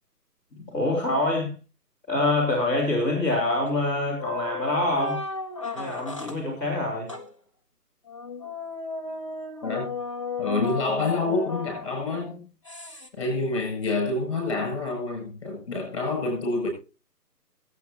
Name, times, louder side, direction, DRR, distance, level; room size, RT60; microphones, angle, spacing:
voice 1, 0.5-1.5 2.1-5.2 5.7-7.1, left 2 dB, 5° left, 2.6 m, -25 dB
sound 1, 3.7-3.9 4.2-6.4 7.1-7.3 8.1-12.2 12.6-13.1, left 3 dB, 20° left, 0.7 m, -35 dB
voice 2, 10.4-12.4 13.2-16.7, left 3 dB, 35° left, 7.8 m, -27 dB
22.5 x 8.3 x 2.9 m
figure-of-eight pair, 145°, 48 cm